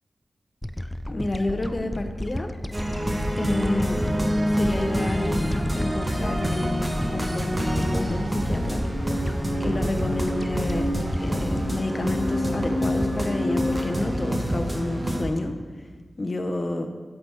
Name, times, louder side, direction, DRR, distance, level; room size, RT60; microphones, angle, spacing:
sound 1, 0.6-13.1, equal, 10° left, 0.3 m, -33 dB
voice 1, 1.1-2.5 3.4-4.0 4.4-5.5 5.8-6.9 7.1-8.9 9.6-10.9 11.2-15.5 16.2-16.9, left 2 dB, 40° left, 5 dB, 0.8 m, -29 dB
sound 2, 2.7-15.2, equal, 25° right, 1.0 m, -26 dB
sound 3, 2.8-14.4, left 1 dB, 70° left, 1.5 m, -41 dB
9.7 x 5.8 x 3.4 m, 1.5 s
wide cardioid pair, 75°, 0 cm